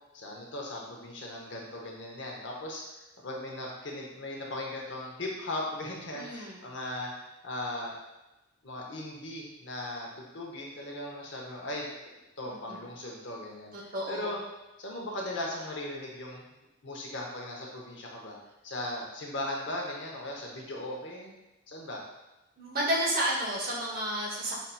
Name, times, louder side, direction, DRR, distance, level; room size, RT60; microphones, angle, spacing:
voice 1, 0.1-2.8 3.2-7.1 7.4-8.0 8.6-11.9 12.4-14.4 14.8-16.5 16.8-18.4 18.6-21.3 21.7-22.0, left 1 dB, 60° left, -2 dB, 0.7 m, -38 dB
voice 2, 6.1-6.6 12.4-12.8 13.7-14.3 22.6-24.6, right 1 dB, 45° right, -4 dB, 0.9 m, -31 dB
5.3 x 2.8 x 2.2 m, 0.98 s
head